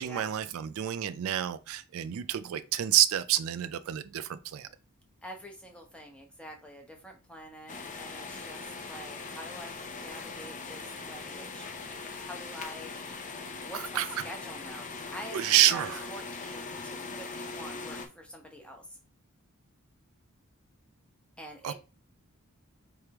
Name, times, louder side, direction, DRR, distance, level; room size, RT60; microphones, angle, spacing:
voice 1, 0.0-4.7 13.7-14.1 15.3-16.0 21.6-21.7, right 12 dB, 65° right, 0.3 m, -28 dB
voice 2, 5.2-11.7 12.1-12.9 13.6-19.0 21.4-21.7, equal, 5° left, 0.9 m, -46 dB
sound 1, 7.7-18.1, left 4 dB, 35° left, 0.5 m, -41 dB
4.6 x 3.3 x 2.9 m
head